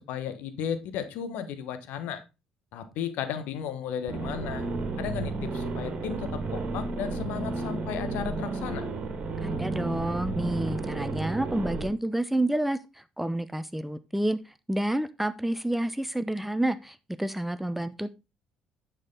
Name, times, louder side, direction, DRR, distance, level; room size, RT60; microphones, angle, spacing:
voice 1, 0.0-2.2 2.7-4.6 5.0-8.9, left 8 dB, 65° left, 10 dB, 1.4 m, -34 dB
sound 1, 4.1-11.9, right 3 dB, 40° right, 2.2 m, -32 dB
voice 2, 9.4-18.2, right 1 dB, 5° right, 14 dB, 0.8 m, -29 dB
9.7 x 6.5 x 3.9 m, 0.26 s
figure-of-eight pair, 55°, 3 cm